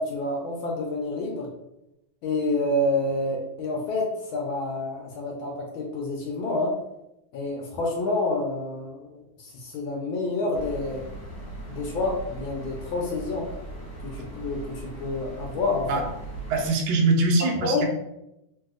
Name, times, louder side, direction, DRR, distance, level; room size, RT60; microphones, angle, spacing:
voice 1, 0.0-1.5 2.2-6.7 7.3-11.0 11.7-13.5 14.0-15.9 17.6-17.8, left 2 dB, 75° left, 0 dB, 1.3 m, -28 dB
sound 1, 10.5-16.7, right 2 dB, 50° left, 1.3 m, -39 dB
voice 2, 16.5-17.8, right 2 dB, 75° right, 1 dB, 1.3 m, -22 dB
3.3 x 2.7 x 2.3 m, 0.88 s
omnidirectional pair, 2.3 m